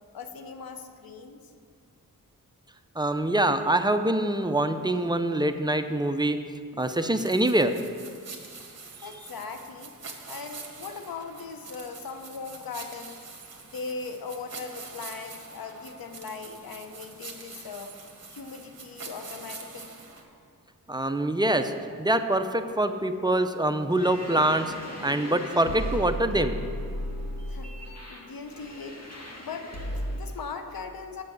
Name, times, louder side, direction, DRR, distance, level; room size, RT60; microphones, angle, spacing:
voice 1, 0.1-1.5 9.0-9.9 10.3-13.2 13.7-18.0 18.3-19.9 27.5-29.0 29.4-31.2, left 4 dB, 90° left, 6 dB, 0.8 m, -39 dB
voice 2, 3.0-6.4 6.7-7.7 20.9-21.7 22.0-24.7 25.0-26.5, right 1 dB, 10° right, 7 dB, 0.5 m, -24 dB
sound 1, 6.8-20.2, right 4 dB, 45° right, 1.3 m, -45 dB
sound 2, 23.9-30.3, equal, 50° left, 1.8 m, -35 dB
7.5 x 6.6 x 7.8 m, 2.2 s
wide cardioid pair, 80°, 34 cm